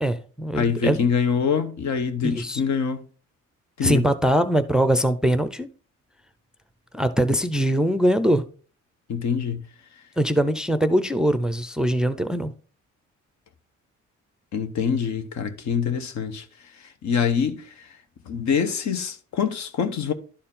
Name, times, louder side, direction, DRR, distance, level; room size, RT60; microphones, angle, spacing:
voice 1, 0.0-1.1 2.2-2.6 3.8-5.7 6.9-8.4 10.2-12.5, equal, ahead, 0.5 m, -22 dB
voice 2, 0.5-3.0 3.8-4.0 9.1-9.7 14.5-18.0 18.2-20.1, left 6 dB, 65° left, 1.1 m, -25 dB
11.5 x 4.3 x 3.7 m
cardioid pair, 90°, 30 cm